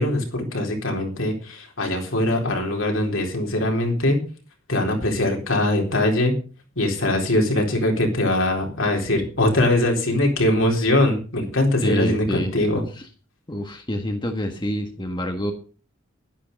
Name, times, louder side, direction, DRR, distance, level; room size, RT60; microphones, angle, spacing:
voice 1, 0.0-4.2 4.7-6.3 6.8-12.8, left 1 dB, 70° left, 2 dB, 4.1 m, -22 dB
voice 2, 11.8-12.5 12.9-13.0 13.5-15.5, equal, 20° left, 4 dB, 1.6 m, -27 dB
11.5 x 11.0 x 5.4 m, 0.38 s
head